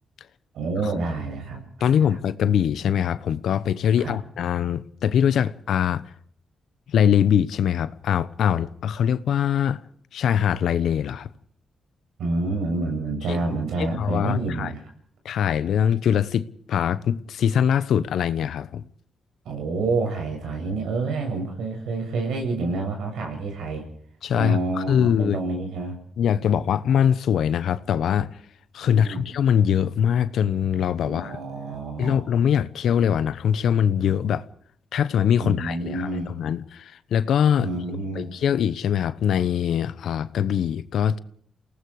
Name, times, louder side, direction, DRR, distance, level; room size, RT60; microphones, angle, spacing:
voice 1, 0.5-1.9 4.0-4.2 12.2-14.9 19.4-23.8 24.3-26.0 28.8-29.2 31.0-32.2 35.4-36.3 37.6-38.3, right 3 dB, 85° right, 7.4 m, -28 dB
voice 2, 1.8-6.0 6.9-9.8 10.1-11.3 13.3-13.4 13.8-14.7 15.2-18.9 24.2-25.4 26.2-28.4 28.7-31.4 32.0-34.4 34.9-37.7 38.1-41.2, left 9 dB, 80° left, 1.0 m, -22 dB
29.0 x 18.5 x 4.9 m
cardioid pair, 90°, 0 cm